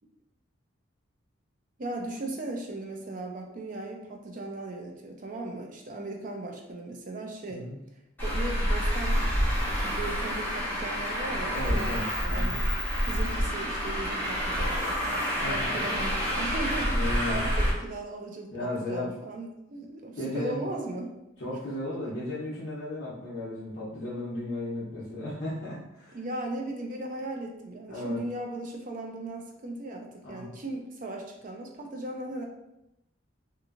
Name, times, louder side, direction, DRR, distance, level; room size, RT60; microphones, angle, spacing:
voice 1, 1.8-7.7 8.2-9.3 9.6-12.8 13.1-21.1 26.1-32.4, right 2 dB, 40° right, 2 dB, 0.4 m, -37 dB
voice 2, 7.5-7.8 11.5-12.6 15.4-15.7 16.9-17.4 18.5-19.1 20.1-20.6 21.4-26.2 27.9-28.2 30.2-30.5, left 1 dB, 60° left, -10 dB, 0.8 m, -35 dB
Traffic noise roadway noise, 8.2-17.7, equal, 10° left, 0.7 m, -28 dB
2.9 x 2.5 x 2.5 m, 0.86 s
head